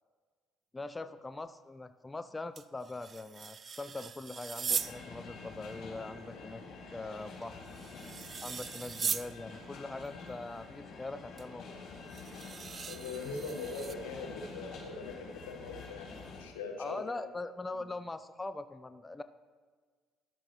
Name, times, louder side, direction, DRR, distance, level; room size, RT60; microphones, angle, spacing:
voice 1, 0.7-7.6 8.4-11.8 16.8-19.2, left 2 dB, 20° left, 11 dB, 0.5 m, -42 dB
sound 1, 2.6-5.0 7.4-9.3 11.4-11.5 12.1-14.0, right 6 dB, 40° right, 0.5 m, -39 dB
sound 2, 4.7-16.4, left 4 dB, 60° left, 3.4 m, -47 dB
voice 2, 12.9-17.1 17.7-17.9, left 4 dB, 80° left, 4 dB, 1.3 m, -41 dB
13.5 x 12.0 x 3.1 m, 1.6 s
hypercardioid pair, 55°, 0 cm